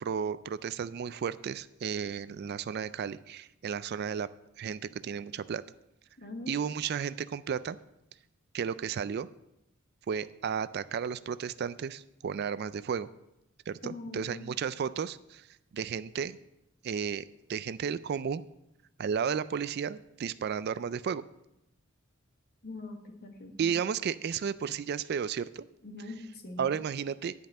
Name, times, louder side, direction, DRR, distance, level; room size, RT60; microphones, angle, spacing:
voice 1, 0.0-4.3 4.6-5.6 6.5-7.8 8.5-9.3 10.1-13.1 13.7-15.5 15.7-16.4 16.8-18.4 19.0-21.2 23.6-25.6 26.6-27.3, right 7 dB, 50° right, 15 dB, 0.3 m, -33 dB
voice 2, 6.2-6.6 13.8-14.4 22.6-23.8 25.8-26.7, left 2 dB, 50° left, 4 dB, 1.5 m, -42 dB
10.5 x 5.4 x 7.4 m, 0.86 s
head